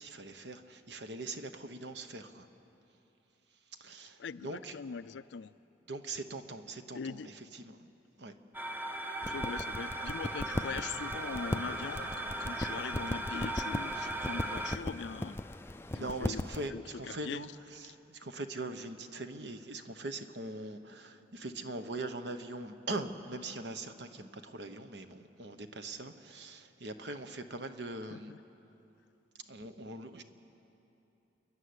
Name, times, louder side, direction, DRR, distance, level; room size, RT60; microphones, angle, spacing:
voice 1, 0.0-2.5 3.8-4.8 5.9-7.9 8.2-8.3 13.3-13.4 14.0-14.1 15.9-28.3 29.5-30.2, right 2 dB, 70° right, 1.1 m, -42 dB
voice 2, 4.2-5.5 6.9-7.3 9.2-15.4 15.9-16.4 16.7-17.4 28.1-28.4, left 5 dB, 75° left, 0.4 m, -41 dB
sound 1, 8.5-14.8, right 1 dB, 10° right, 0.8 m, -38 dB
sound 2, 9.2-16.7, left 1 dB, 15° left, 0.4 m, -39 dB
29.5 x 11.5 x 9.6 m
head